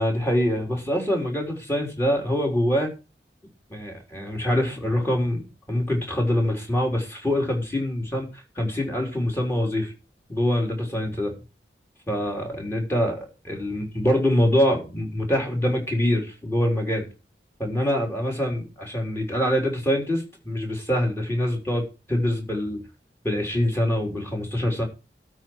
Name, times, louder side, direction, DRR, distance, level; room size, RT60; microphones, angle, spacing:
voice 1, 0.0-2.9 3.7-9.9 10.3-11.3 12.1-17.1 17.6-21.8 22.1-22.8 23.2-24.8, equal, 15° left, 1 dB, 3.8 m, -24 dB
12.5 x 4.6 x 7.6 m, 0.31 s
head